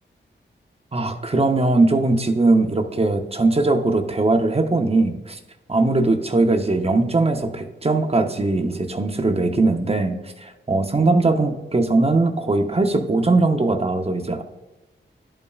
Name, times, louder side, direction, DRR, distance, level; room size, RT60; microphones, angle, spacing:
voice 1, 0.9-5.4 5.7-10.1 10.4-14.4, right 2 dB, 30° right, 5 dB, 0.7 m, -20 dB
11.5 x 5.5 x 2.4 m, 1.1 s
cardioid pair, 65°, 20 cm